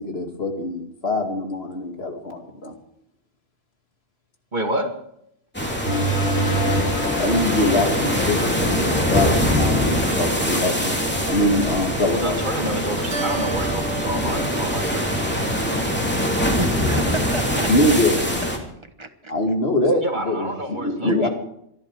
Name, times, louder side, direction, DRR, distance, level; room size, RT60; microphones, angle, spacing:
voice 1, 0.0-2.7 7.2-11.0 11.3-12.4 17.7-18.1 19.3-21.3, left 1 dB, 75° left, 4 dB, 2.6 m, -23 dB
voice 2, 4.5-4.9 12.1-15.2 20.0-21.3, right 1 dB, 45° right, 3 dB, 2.5 m, -28 dB
sound 1, 5.5-18.6, equal, 10° left, 3.0 m, -23 dB
sound 2, 5.9-11.1, right 1 dB, 90° left, 3.0 m, -28 dB
Keyboard (musical), 13.1-16.0, right 4 dB, 80° right, 2.4 m, -34 dB
voice 3, 16.6-17.7 19.0-19.3 21.0-21.3, right 1 dB, 30° right, 7 dB, 1.4 m, -30 dB
25.5 x 11.5 x 4.9 m, 0.74 s
omnidirectional pair, 1.1 m